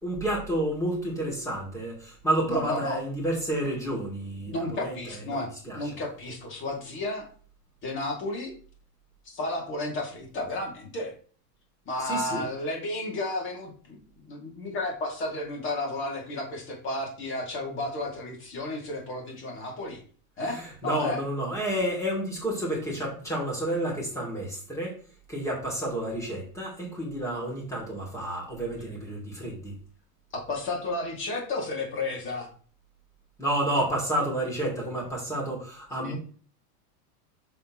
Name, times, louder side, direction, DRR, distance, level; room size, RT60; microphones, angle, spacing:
voice 1, 0.0-5.0 5.3-5.8 12.0-12.5 20.5-24.9 25.3-29.7 33.4-36.2, right 1 dB, 5° left, -2 dB, 2.8 m, -30 dB
voice 2, 2.5-3.0 4.5-7.3 7.8-8.5 9.2-11.1 11.9-14.0 14.2-20.0 20.4-21.2 30.3-32.5 36.0-36.2, left 2 dB, 25° left, 0 dB, 2.5 m, -32 dB
7.2 x 6.9 x 3.1 m, 0.42 s
supercardioid pair, 155°, 48 cm